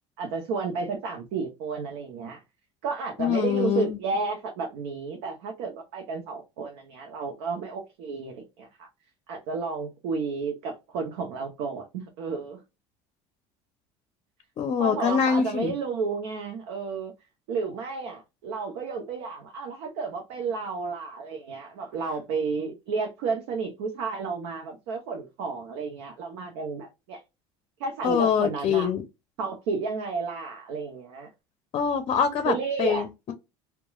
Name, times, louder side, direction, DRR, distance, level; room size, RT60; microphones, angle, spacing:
voice 1, 0.2-2.4 2.8-8.9 9.3-12.6 14.8-17.1 17.5-27.2 27.8-28.9 29.4-31.3 32.4-33.1, right 4 dB, 80° right, 0.7 m, -32 dB
voice 2, 3.2-4.0 14.6-15.7 28.0-29.0 31.7-33.3, left 7 dB, 45° left, 0.5 m, -24 dB
2.9 x 2.2 x 2.3 m
supercardioid pair, 100°, 13 cm